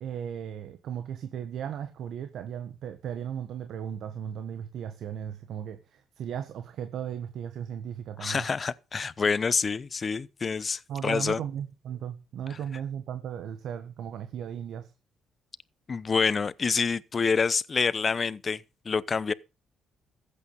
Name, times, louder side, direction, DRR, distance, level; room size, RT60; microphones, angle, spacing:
voice 1, 0.0-8.5 10.9-14.9, right 9 dB, 75° right, 1.4 m, -36 dB
voice 2, 8.2-11.4 15.9-19.3, left 5 dB, 35° left, 0.8 m, -27 dB
14.5 x 8.5 x 5.5 m
cardioid pair, 90°, 0 cm